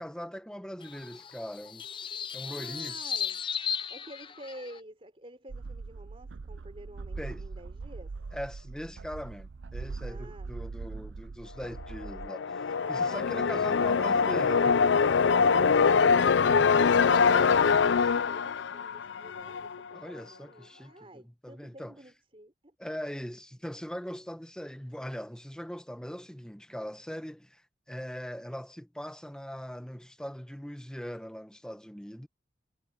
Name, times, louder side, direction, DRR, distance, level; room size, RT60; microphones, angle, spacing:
voice 1, 0.0-1.8 2.3-3.0 7.2-7.4 8.3-14.8 16.5-16.6 19.9-22.0 22.8-27.6 27.9-32.3, equal, 5° left, 1.1 m, -40 dB
sound 1, 0.8-4.8, left 8 dB, 25° left, 0.5 m, -36 dB
voice 2, 2.2-3.4 3.7-8.1 10.0-10.5 12.8-13.3 15.2-22.7, right 1 dB, 30° right, 3.9 m, -49 dB
sound 2, 5.5-12.3, right 4 dB, 80° right, 0.5 m, -41 dB
sound 3, 12.0-19.8, left 5 dB, 75° left, 0.5 m, -24 dB
head